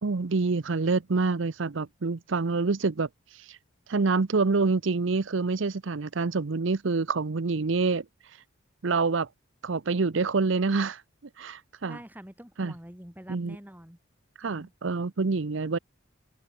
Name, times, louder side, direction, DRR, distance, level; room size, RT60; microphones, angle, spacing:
voice 1, 0.0-3.1 3.5-3.6 3.9-8.0 8.8-9.3 9.6-11.0 11.4-12.0 12.6-12.7 13.3-13.6 14.4-15.8, right 4 dB, 65° right, 0.7 m, -26 dB
voice 2, 11.9-14.0 14.4-14.7, equal, 10° right, 2.7 m, -46 dB
open air
head